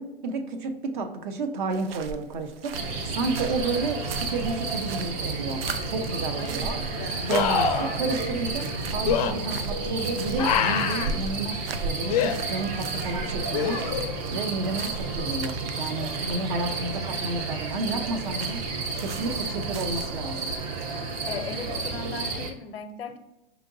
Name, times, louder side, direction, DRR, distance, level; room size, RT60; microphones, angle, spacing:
voice 1, 0.0-6.8 7.2-8.7 8.9-14.0 14.3-18.6 19.0-20.5, right 3 dB, 55° right, 7 dB, 0.7 m, -31 dB
sound 1, 1.7-20.6, right 4 dB, 85° right, 0.5 m, -39 dB
sound 2, 2.7-22.5, right 3 dB, 25° right, 0.4 m, -31 dB
sound 3, 5.7-5.8 7.3-8.0 9.0-9.3 10.4-11.1 12.1-12.3 13.5-14.2 17.4-17.5, left 7 dB, 40° left, 0.4 m, -25 dB
voice 2, 6.3-6.7 7.0-7.4 21.3-23.2, left 4 dB, 90° left, 8 dB, 0.6 m, -37 dB
5.0 x 2.9 x 2.6 m, 0.94 s
hypercardioid pair, 135°, 29 cm